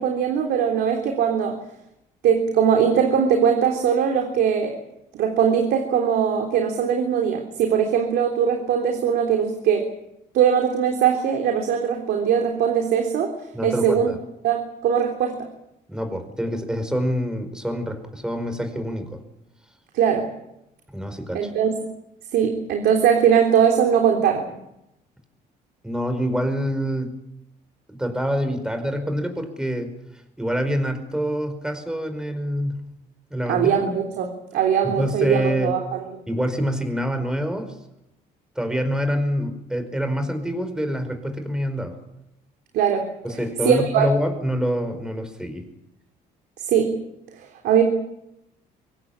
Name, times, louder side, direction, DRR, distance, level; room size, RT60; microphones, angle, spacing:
voice 1, 0.0-1.6 2.2-4.7 5.1-9.9 10.3-13.3 13.6-14.1 14.4-15.5 19.9-20.3 21.3-21.7 22.3-24.5 33.5-36.0 42.7-43.1 43.6-44.1 46.6-47.0 47.6-47.8, right 8 dB, 75° right, 2 dB, 3.5 m, -20 dB
voice 2, 13.5-14.2 15.9-19.2 20.9-21.5 25.8-27.2 27.9-29.9 30.4-32.9 33.3-33.7 34.8-35.7 36.3-37.7 38.5-42.0 43.2-45.7, equal, 5° right, 7 dB, 5.0 m, -26 dB
24.0 x 18.5 x 8.8 m, 0.85 s
cardioid pair, 110°, 17 cm